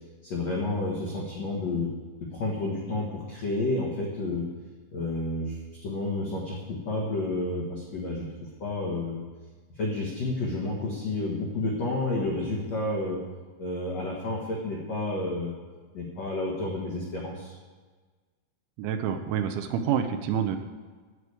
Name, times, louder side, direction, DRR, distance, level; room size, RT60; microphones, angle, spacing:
voice 1, 0.2-1.9 2.2-4.5 4.9-8.3 8.6-9.2 9.7-13.2 13.6-15.6 15.9-17.5, left 2 dB, 75° left, -4 dB, 1.5 m, -30 dB
voice 2, 18.8-20.6, right 8 dB, 80° right, 7 dB, 3.0 m, -27 dB
14.0 x 4.9 x 8.4 m, 1.4 s
omnidirectional pair, 5.7 m